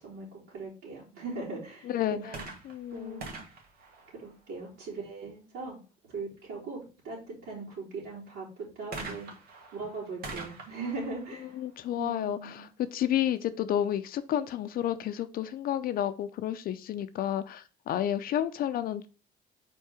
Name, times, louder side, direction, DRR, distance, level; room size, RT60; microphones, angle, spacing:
voice 1, 0.0-2.4 2.9-3.4 4.1-5.8 6.0-9.3 9.7-11.6 11.9-12.6, right 3 dB, 85° right, 3.6 m, -40 dB
voice 2, 1.9-2.4 2.6-3.2 11.6-12.7 12.9-19.1, left 11 dB, 60° left, 0.5 m, -31 dB
sound 1, 2.3-4.8 8.9-12.6 13.4-13.5, right 3 dB, 65° right, 1.8 m, -45 dB
4.6 x 4.5 x 4.8 m
cardioid pair, 110°, 17 cm